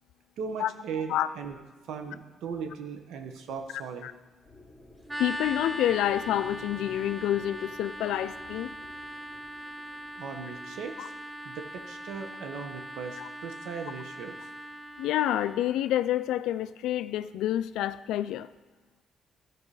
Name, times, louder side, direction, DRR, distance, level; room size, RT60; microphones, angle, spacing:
voice 1, 0.4-1.6 1.9-4.1 10.2-11.1 11.4-14.4, right 6 dB, 85° right, 5 dB, 1.0 m, -38 dB
sound 1, 4.4-12.5, left 1 dB, 30° right, 2.6 m, -54 dB
sound 2, 5.1-15.7, equal, 10° right, 0.4 m, -40 dB
voice 2, 5.2-8.7 11.0-11.1 13.2-13.3 15.0-18.5, left 12 dB, 90° left, 15 dB, 0.3 m, -28 dB
14.0 x 4.7 x 4.8 m, 1.3 s
cardioid pair, 90°, 0 cm